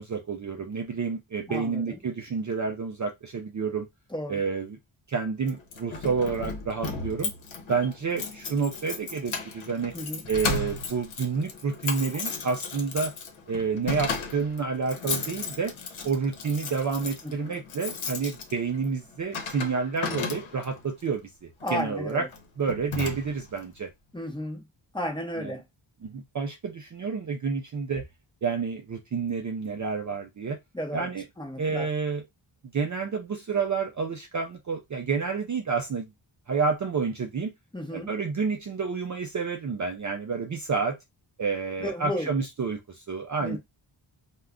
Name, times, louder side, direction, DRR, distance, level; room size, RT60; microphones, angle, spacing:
voice 1, 0.0-3.9 4.3-4.8 5.1-7.3 7.7-9.9 10.3-13.1 13.5-15.7 16.0-21.3 21.7-22.3 22.6-23.9 25.4-25.5 26.0-28.0 28.4-30.6 30.9-31.3 31.6-32.2 32.7-36.1 36.5-37.5 37.9-41.0 41.4-43.6, right 5 dB, 40° right, 0.4 m, -29 dB
voice 2, 1.5-2.0 4.1-4.4 9.9-10.2 17.2-17.5 21.6-22.3 24.1-24.6 24.9-25.6 30.7-31.1 31.4-31.9 37.7-38.1 41.8-42.3 43.4-43.6, left 1 dB, 10° left, 0.8 m, -33 dB
Keys jangling, 5.5-20.8 21.6-21.9 22.3-22.4 22.7-23.6, left 4 dB, 70° left, 0.8 m, -35 dB
2.3 x 2.2 x 3.5 m
wide cardioid pair, 125°, 50 cm